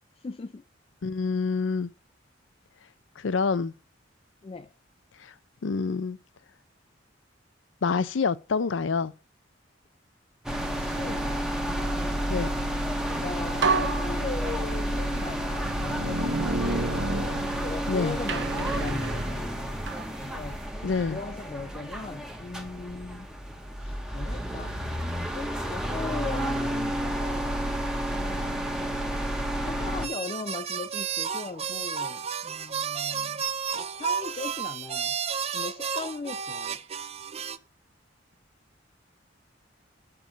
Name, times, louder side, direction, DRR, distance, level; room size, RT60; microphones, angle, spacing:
voice 1, 0.2-0.6 4.4-4.7 10.5-11.4 11.6-16.9 17.6-19.9 20.2-20.6 21.1-23.3 23.8-24.8 25.3-27.8 28.0-29.0 29.3-33.4 33.7-35.2 35.5-36.8, left 4 dB, 30° left, 0.4 m, -39 dB
voice 2, 1.0-1.9 3.2-3.7 5.2-5.3 5.6-6.2 7.8-9.1 12.3-12.6 17.9-18.2 20.8-21.2, left 4 dB, 90° left, 0.5 m, -27 dB
sound 1, 10.5-30.1, equal, 5° right, 1.0 m, -31 dB
sound 2, 13.0-13.2 13.6-14.9 15.5-17.9 18.3-20.1, right 3 dB, 65° right, 1.0 m, -30 dB
sound 3, 30.0-37.6, right 7 dB, 35° right, 0.5 m, -32 dB
7.0 x 5.3 x 6.1 m
head